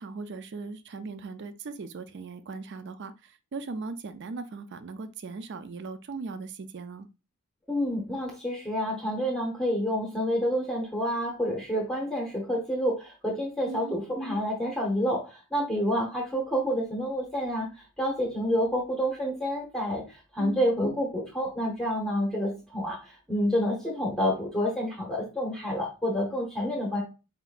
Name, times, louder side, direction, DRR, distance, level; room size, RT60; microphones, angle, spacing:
voice 1, 0.0-7.1 13.7-14.0 20.4-20.6, right 4 dB, 50° right, 12 dB, 0.4 m, -39 dB
voice 2, 7.7-27.0, equal, ahead, -3 dB, 0.8 m, -28 dB
4.5 x 3.7 x 2.4 m, 0.30 s
head